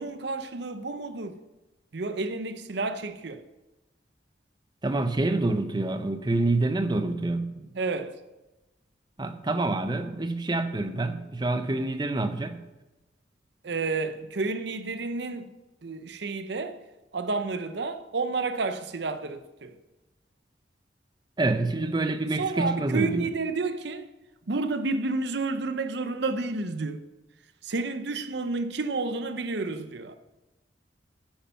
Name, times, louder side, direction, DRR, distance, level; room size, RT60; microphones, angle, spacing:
voice 1, 0.0-1.4 1.9-3.4 7.6-8.1 13.6-15.5 15.8-16.8 17.1-19.8 22.4-24.1 24.5-27.0 27.6-30.1, right 3 dB, 65° right, 0.7 m, -30 dB
voice 2, 4.8-7.5 9.2-12.6 21.4-23.3, right 2 dB, 25° right, 0.6 m, -27 dB
10.5 x 8.9 x 5.7 m
head